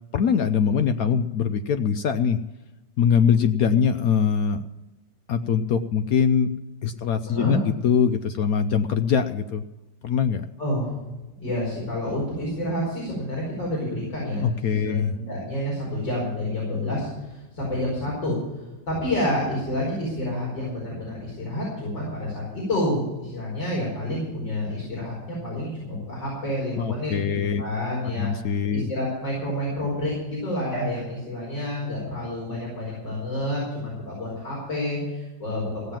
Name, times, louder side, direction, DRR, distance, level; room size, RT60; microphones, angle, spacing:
voice 1, 0.1-2.4 3.0-4.6 5.3-6.5 6.8-7.6 7.8-9.6 10.0-10.5 14.4-15.1 26.8-27.6 28.1-28.9, left 7 dB, 65° left, 9 dB, 1.0 m, -22 dB
voice 2, 7.3-7.6 10.6-11.0 11.4-15.0 15.3-28.3 28.7-36.0, left 1 dB, 80° left, -5 dB, 5.5 m, -29 dB
16.0 x 7.5 x 8.8 m, 1.1 s
omnidirectional pair, 1.9 m